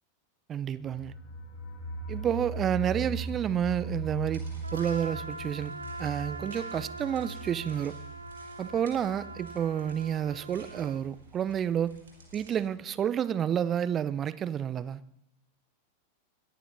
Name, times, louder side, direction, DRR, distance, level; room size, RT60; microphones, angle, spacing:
voice 1, 0.5-1.1 2.1-4.5 4.7-5.7 6.0-7.9 8.6-12.0 12.3-15.0, right 9 dB, 25° right, 0.5 m, -30 dB
sound 1, 0.8-11.5 11.8-11.9 12.2-12.3, right 2 dB, 45° left, 2.9 m, -40 dB
sound 2, 4.3-12.6, right 3 dB, 65° right, 4.6 m, -55 dB
Trumpet, 4.6-11.1, right 2 dB, 80° right, 0.7 m, -43 dB
21.0 x 14.0 x 2.7 m
figure-of-eight pair, 90°, 0 cm